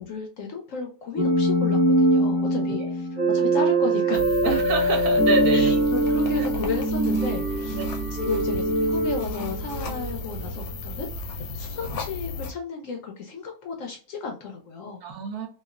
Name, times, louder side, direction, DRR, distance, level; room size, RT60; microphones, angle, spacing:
voice 1, 0.0-2.8 3.3-4.4 5.5-7.8 8.2-15.0, left 5 dB, 65° left, 3 dB, 0.8 m, -33 dB
sound 1, 1.2-10.1, right 1 dB, 10° right, 0.5 m, -23 dB
voice 2, 2.6-2.9 4.4-5.7 7.7-7.8 15.0-15.5, right 6 dB, 70° right, 3 dB, 1.1 m, -28 dB
sound 2, 4.1-12.5, left 1 dB, 80° left, 1.2 m, -34 dB
3.0 x 2.3 x 2.3 m, 0.39 s
omnidirectional pair, 1.7 m